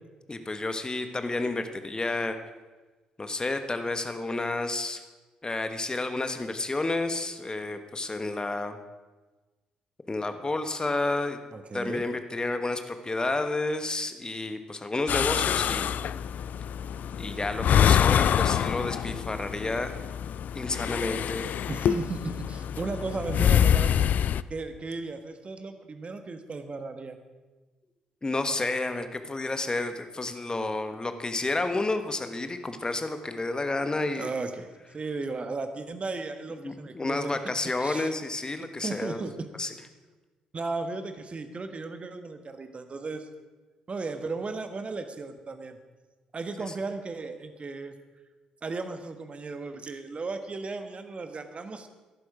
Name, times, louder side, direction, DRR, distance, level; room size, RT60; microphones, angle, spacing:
voice 1, 0.3-2.4 3.2-5.0 5.4-8.8 10.1-11.4 11.7-15.9 17.2-19.9 20.5-21.6 28.2-34.3 36.6-39.2 39.6-39.7, left 2 dB, 25° left, 8 dB, 1.4 m, -30 dB
voice 2, 11.5-12.1 21.7-24.0 24.5-27.2 34.2-37.4 37.8-38.1 38.6-39.5 40.5-43.3 43.9-45.8 46.3-47.9 48.6-51.9, right 3 dB, 35° right, 8 dB, 1.5 m, -35 dB
sound 1, 15.1-24.4, left 9 dB, 55° left, 0.4 m, -26 dB
15.0 x 11.5 x 5.0 m, 1.2 s
figure-of-eight pair, 45°, 3 cm